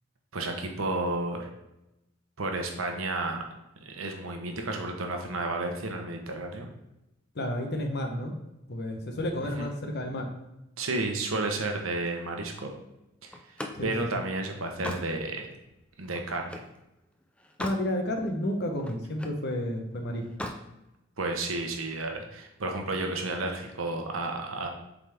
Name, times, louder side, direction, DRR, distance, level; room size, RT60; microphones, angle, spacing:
voice 1, 0.3-1.5 2.4-3.4 3.8-6.6 9.4-9.7 10.8-12.7 13.2-13.4 13.8-15.5 16.0-16.6 21.2-24.7, right 2 dB, 80° right, 3 dB, 1.1 m, -32 dB
voice 2, 7.3-8.3 8.7-10.3 13.7-13.9 17.6-20.2, left 1 dB, 55° left, 3 dB, 1.0 m, -31 dB
Slam, 13.3-16.8 17.2-17.9 18.3-19.4 20.2-20.7, left 1 dB, 5° left, 0.4 m, -40 dB
7.4 x 4.1 x 3.5 m, 0.90 s
head